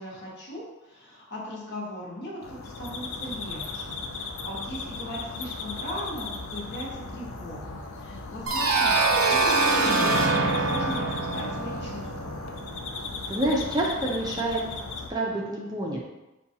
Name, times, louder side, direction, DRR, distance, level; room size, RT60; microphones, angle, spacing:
voice 1, 0.0-12.4, equal, 50° left, -4 dB, 1.0 m, -38 dB
sound 1, 2.4-15.1, left 4 dB, 65° left, 0.4 m, -36 dB
sound 2, 8.5-13.1, right 3 dB, 80° right, 0.5 m, -24 dB
voice 2, 13.3-14.6 15.1-16.1, right 1 dB, 20° right, -3 dB, 0.4 m, -27 dB
5.7 x 2.3 x 2.8 m, 1.0 s
head